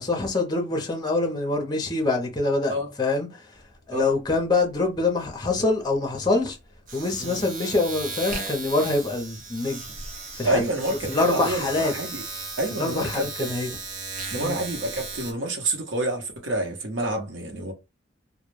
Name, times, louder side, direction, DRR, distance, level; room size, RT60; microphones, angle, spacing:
voice 1, 0.0-3.3 3.9-6.6 6.9-9.8 10.4-10.6 11.1-11.9 12.8-13.7 14.4-14.5, left 3 dB, 20° left, 0.5 m, -25 dB
Domestic sounds home sounds, 3.5-3.8 4.0-15.3, right 3 dB, 45° right, 0.7 m, -36 dB
voice 2, 10.4-12.2 12.6-13.5 14.3-17.7, right 1 dB, 80° right, 0.8 m, -28 dB
2.1 x 2.1 x 3.1 m
head